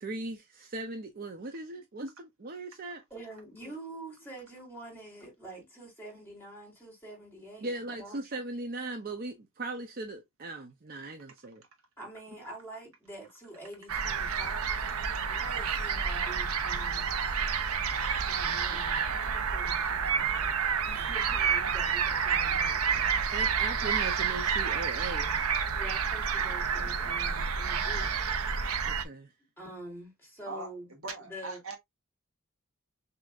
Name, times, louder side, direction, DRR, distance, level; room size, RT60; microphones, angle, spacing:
voice 1, 0.0-3.0 7.6-11.6 18.2-18.3 23.3-25.4 28.8-29.3, right 2 dB, 45° right, 0.6 m, -38 dB
voice 2, 3.1-8.2 12.0-17.1 18.3-20.5 20.8-23.1 25.7-28.1 29.6-30.9 31.2-31.6, right 1 dB, 10° left, 3.1 m, -46 dB
sound 1, 13.9-29.0, right 6 dB, 85° right, 0.7 m, -29 dB
voice 3, 31.0-31.8, right 3 dB, 70° right, 1.3 m, -39 dB
6.3 x 2.8 x 2.4 m
head